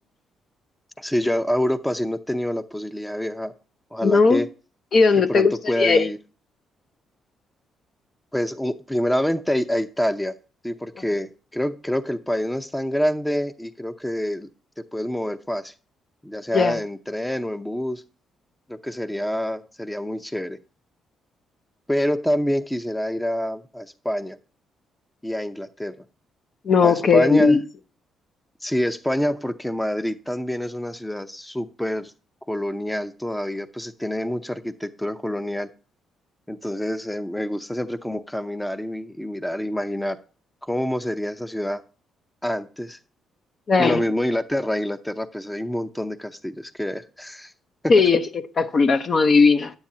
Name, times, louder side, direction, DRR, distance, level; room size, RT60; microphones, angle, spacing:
voice 1, 1.0-3.5 3.9-4.5 5.3-6.2 8.3-10.4 10.6-14.5 14.9-15.7 16.2-18.0 18.7-20.6 21.9-24.4 25.2-25.9 26.8-27.6 28.6-32.1 32.5-35.7 36.5-40.2 40.6-41.8 42.4-43.0 43.8-47.5, equal, 5° left, 0.6 m, -26 dB
voice 2, 4.0-4.4 4.9-5.5 5.8-6.1 16.5-16.8 26.7-27.6 43.7-44.0 47.9-48.2 48.6-49.7, left 4 dB, 45° left, 0.6 m, -17 dB
9.5 x 8.8 x 2.7 m
cardioid pair, 90°, 0 cm